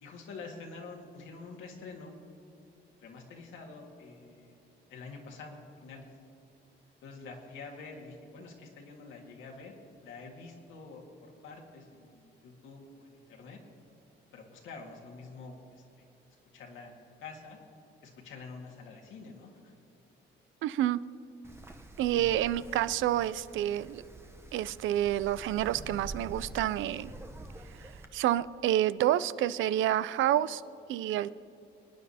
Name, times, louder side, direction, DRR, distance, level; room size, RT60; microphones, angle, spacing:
voice 1, 0.0-2.1 3.0-4.6 4.9-6.1 7.0-9.7 10.0-13.6 14.3-16.1 16.5-17.6 18.0-19.7 22.1-22.5, left 4 dB, 80° left, 1 dB, 1.9 m, -47 dB
voice 2, 20.6-21.0 22.0-24.0 24.5-27.1 28.1-30.6 30.9-31.3, right 12 dB, 80° right, 17 dB, 0.4 m, -28 dB
Wind, 21.4-28.1, right 2 dB, 10° right, 0.8 m, -47 dB
25.5 x 9.4 x 2.8 m, 2.6 s
cardioid pair, 90°, 20 cm